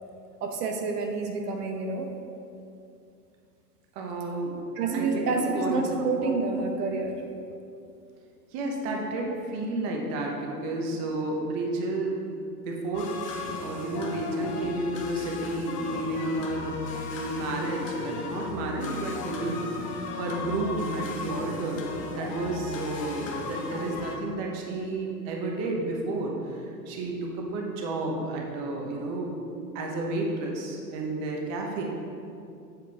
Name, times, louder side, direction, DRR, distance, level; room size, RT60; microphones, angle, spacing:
voice 1, 0.4-2.1 4.8-7.2 9.2-9.4, right 3 dB, 70° right, 3 dB, 1.0 m, -28 dB
voice 2, 3.9-4.6 4.9-5.9 8.5-12.2 12.7-16.7 17.1-21.8 22.1-31.8, right 2 dB, 35° right, 0 dB, 1.1 m, -31 dB
sound 1, 12.9-24.2, left 4 dB, 20° left, 0.4 m, -36 dB
7.9 x 6.6 x 3.5 m, 2.6 s
hypercardioid pair, 135°, 49 cm